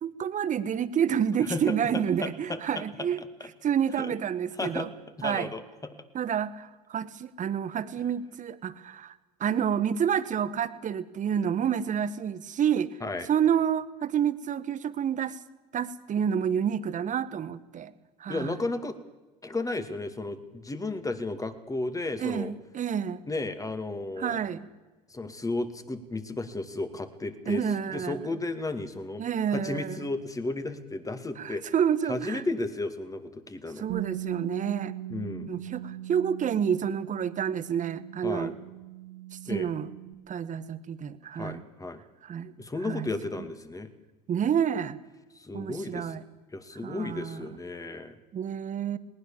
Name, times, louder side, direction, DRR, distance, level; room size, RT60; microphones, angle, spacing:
voice 1, 0.0-3.2 3.6-4.9 5.2-5.5 6.1-9.1 9.4-13.0 13.3-15.4 15.7-17.9 18.2-18.5 22.2-23.2 24.2-24.7 27.5-28.2 29.2-30.0 31.4-32.4 33.8-34.9 35.5-38.5 39.3-39.9 40.3-41.6 42.2-42.5 42.8-43.1 44.3-45.0 45.5-46.2 46.8-47.4 48.3-49.0, right 8 dB, 35° right, 14 dB, 1.4 m, -29 dB
voice 2, 1.5-3.5 4.0-4.2 4.6-4.9 5.2-5.6 13.0-13.3 18.3-19.0 19.4-22.5 23.3-24.4 25.1-27.6 27.9-29.2 29.5-31.6 32.1-33.8 35.1-35.5 38.2-38.5 39.5-39.7 41.3-42.0 42.6-43.9 45.3-46.2 46.5-48.2, left 2 dB, 15° left, 9 dB, 2.3 m, -34 dB
Bass guitar, 33.9-40.1, right 13 dB, 65° right, 2.8 m, -39 dB
20.0 x 19.0 x 7.3 m, 1.2 s
hypercardioid pair, 75°, 21 cm